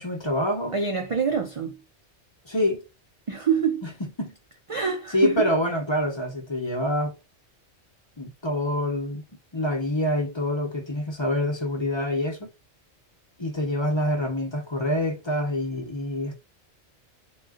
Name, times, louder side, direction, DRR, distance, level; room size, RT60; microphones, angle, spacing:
voice 1, 0.0-0.8 2.5-2.8 4.2-4.3 5.1-7.1 8.2-9.2 9.5-12.5 13.4-16.3, left 1 dB, 25° left, 0.8 m, -26 dB
voice 2, 0.7-1.8 3.3-3.9 4.7-5.5, right 6 dB, 60° right, 0.3 m, -25 dB
3.7 x 2.3 x 2.3 m
omnidirectional pair, 1.2 m